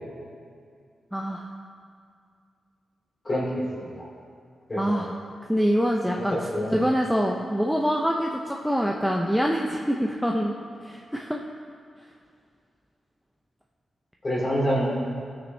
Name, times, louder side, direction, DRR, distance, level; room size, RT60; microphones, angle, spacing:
voice 1, 1.1-1.5 4.8-5.2 5.5-6.4 6.7-10.5 10.8-11.4, equal, ahead, -1 dB, 0.4 m, -25 dB
voice 2, 3.2-4.0 4.7-5.0 6.3-6.8 14.2-15.1, equal, 25° left, -6 dB, 2.5 m, -27 dB
17.5 x 6.4 x 2.6 m, 2.3 s
wide cardioid pair, 175°, 0 cm